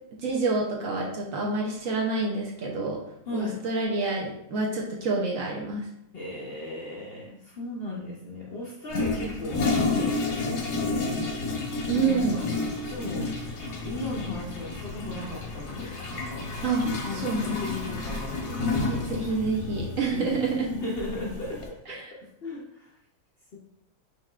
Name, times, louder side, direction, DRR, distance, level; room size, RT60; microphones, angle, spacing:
voice 1, 0.2-3.0 3.3-5.8 11.9-12.4 16.6-16.8 17.2-17.6 18.9-20.7 21.9-22.1, right 3 dB, 65° right, -1 dB, 0.8 m, -28 dB
voice 2, 3.2-3.6 6.1-11.1 11.9-13.3 13.7-16.5 16.8-19.0 20.1-22.9, left 2 dB, 80° left, -4 dB, 0.5 m, -37 dB
Toilet flush, 8.9-21.7, left 3 dB, 55° left, 0.8 m, -31 dB
5.6 x 3.3 x 2.3 m, 0.79 s
omnidirectional pair, 1.9 m